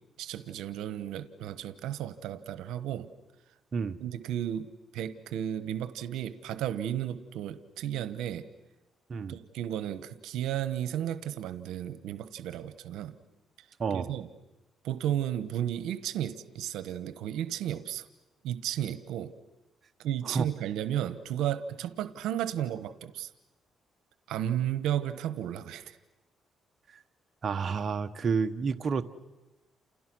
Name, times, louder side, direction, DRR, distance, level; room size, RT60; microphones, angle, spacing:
voice 1, 0.2-3.1 4.0-8.5 9.3-13.2 13.9-14.3 14.8-18.1 18.4-19.3 20.0-23.3 24.3-26.0, right 11 dB, 90° right, 13 dB, 1.1 m, -33 dB
voice 2, 13.8-14.1 20.2-20.5 26.9-27.0 27.4-29.0, right 5 dB, 45° right, 8 dB, 1.2 m, -30 dB
30.0 x 28.5 x 6.2 m, 1.0 s
cardioid pair, 90°, 0 cm